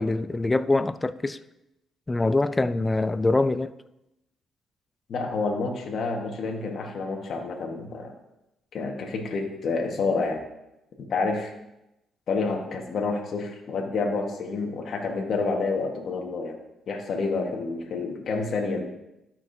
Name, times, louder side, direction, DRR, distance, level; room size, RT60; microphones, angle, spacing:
voice 1, 0.0-1.4 2.1-3.7, left 2 dB, 20° left, 0.4 m, -24 dB
voice 2, 5.1-8.1 8.7-10.4 11.1-11.5 12.3-16.5 16.9-18.8, left 4 dB, 60° left, 1.3 m, -28 dB
12.5 x 5.9 x 2.7 m
cardioid pair, 90°, 0 cm